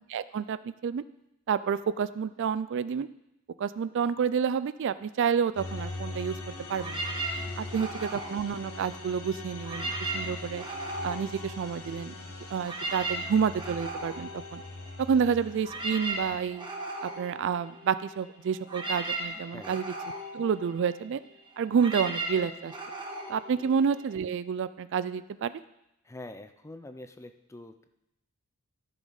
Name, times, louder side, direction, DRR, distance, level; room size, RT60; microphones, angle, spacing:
voice 1, 0.1-0.6 0.8-1.0 1.5-3.1 3.6-6.4 6.7-7.0 7.6-10.6 11.0-12.1 12.5-14.6 15.1-16.7 17.0-19.9 20.3-21.2 21.6-22.7 23.3-25.5, right 7 dB, 55° right, 15 dB, 0.3 m, -29 dB
sound 1, 5.6-16.4, left 2 dB, 75° left, 1.6 m, -41 dB
sound 2, 6.8-9.2 9.5-12.1 12.4-24.3, right 2 dB, 20° right, 1.2 m, -37 dB
voice 2, 19.5-19.8 23.6-23.7 26.0-27.9, left 2 dB, 15° left, 9 dB, 0.5 m, -45 dB
14.0 x 6.3 x 4.0 m, 0.85 s
head